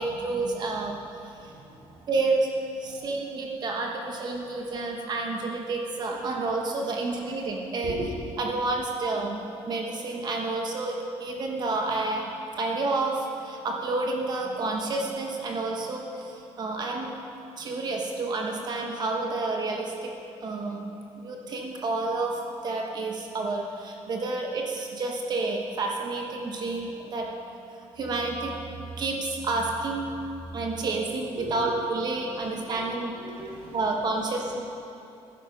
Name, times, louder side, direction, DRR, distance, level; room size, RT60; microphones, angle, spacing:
voice 1, 0.0-1.6 2.1-2.5 2.8-8.0 8.4-12.3 12.6-17.1 17.6-20.1 20.4-20.9 21.2-27.3 28.0-30.2 30.5-33.1 33.7-34.6, right 3 dB, 40° right, 1 dB, 1.1 m, -30 dB
voice 2, 32.7-33.8, right 2 dB, 55° right, -3 dB, 3.9 m, -40 dB
15.5 x 10.0 x 6.0 m, 2.8 s
cardioid pair, 180°, 11 cm